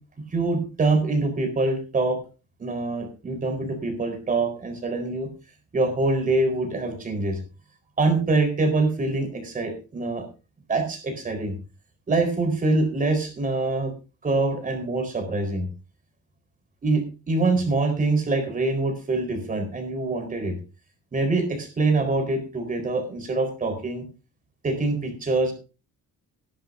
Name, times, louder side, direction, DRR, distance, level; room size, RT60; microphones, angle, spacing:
voice 1, 0.3-2.2 2.6-5.3 5.7-7.4 8.0-10.2 10.7-11.5 12.1-13.9 14.2-15.6 16.8-20.6 21.1-24.0 24.6-25.5, right 3 dB, 25° right, 6 dB, 4.1 m, -24 dB
17.5 x 11.5 x 2.6 m, 0.33 s
cardioid pair, 170°, 33 cm